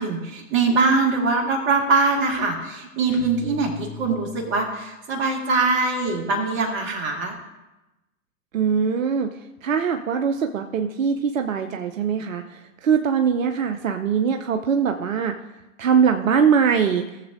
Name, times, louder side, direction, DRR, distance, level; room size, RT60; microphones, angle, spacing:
voice 1, 0.0-7.4, right 3 dB, 30° right, 1 dB, 1.9 m, -22 dB
sound 1, 3.1-4.8, left 8 dB, 30° left, 0.6 m, -39 dB
voice 2, 8.5-9.3 9.6-15.3 15.8-17.1, right 6 dB, 70° right, 5 dB, 0.7 m, -22 dB
17.0 x 7.3 x 2.6 m, 1.0 s
figure-of-eight pair, 110°, 41 cm